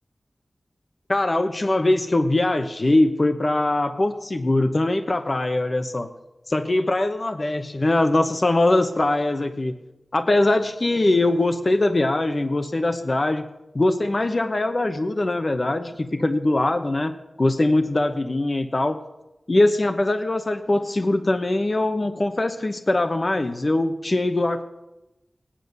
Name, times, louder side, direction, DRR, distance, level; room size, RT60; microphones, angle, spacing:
voice 1, 1.1-6.1 6.5-9.7 10.1-13.4 13.7-19.0 19.5-24.6, left 2 dB, 45° left, 8 dB, 0.9 m, -22 dB
18.5 x 10.0 x 6.8 m, 0.97 s
wide cardioid pair, 80°, 0 cm